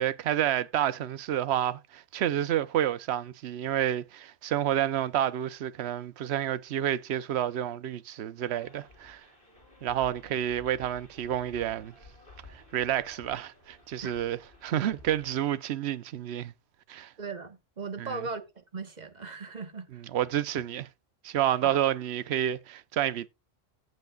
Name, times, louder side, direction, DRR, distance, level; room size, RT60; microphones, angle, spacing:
voice 1, 0.0-9.2 9.8-11.9 12.5-16.5 16.9-17.1 18.0-18.3 19.9-20.9 21.2-23.3, right 11 dB, 65° right, 0.9 m, -29 dB
sound 1, 8.4-15.4, left 2 dB, 45° left, 4.1 m, -53 dB
voice 2, 17.2-19.9 21.6-21.8, right 4 dB, 35° right, 1.4 m, -38 dB
16.5 x 6.4 x 2.3 m
omnidirectional pair, 1.3 m